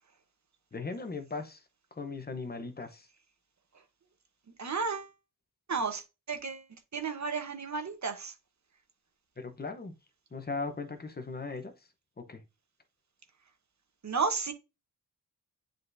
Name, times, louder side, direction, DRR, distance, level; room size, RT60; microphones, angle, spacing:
voice 1, 0.7-1.6 2.0-3.1 9.4-9.9 10.3-11.7 12.2-12.4, left 4 dB, 25° left, 0.8 m, -38 dB
voice 2, 4.6-5.1 5.7-6.0 6.3-6.6 6.9-8.3 14.0-14.5, right 5 dB, 45° right, 1.1 m, -32 dB
10.5 x 3.8 x 2.7 m
wide cardioid pair, 160°, 37 cm